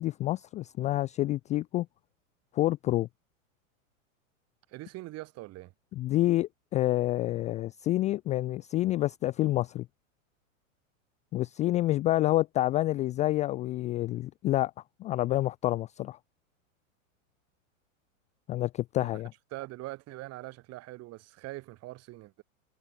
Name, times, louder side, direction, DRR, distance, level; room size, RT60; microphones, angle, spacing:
voice 1, 0.0-1.9 2.5-3.1 5.9-9.9 11.3-14.7 15.0-16.2 18.5-19.3, left 15 dB, 20° left, 0.4 m, -28 dB
voice 2, 4.7-5.7 19.0-19.2 19.5-22.4, right 18 dB, 40° right, 2.9 m, -42 dB
hypercardioid pair, 125°, 40 cm